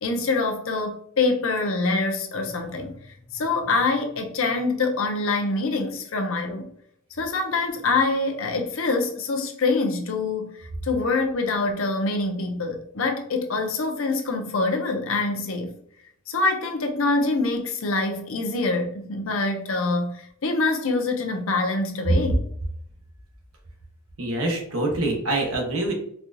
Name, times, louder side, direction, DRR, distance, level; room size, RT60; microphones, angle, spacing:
voice 1, 0.0-2.9 3.3-6.7 7.2-15.7 16.3-22.4, left 3 dB, 65° left, 4 dB, 0.6 m, -25 dB
voice 2, 24.2-25.9, right 2 dB, 85° right, 1 dB, 1.0 m, -25 dB
4.2 x 2.3 x 2.6 m, 0.66 s
head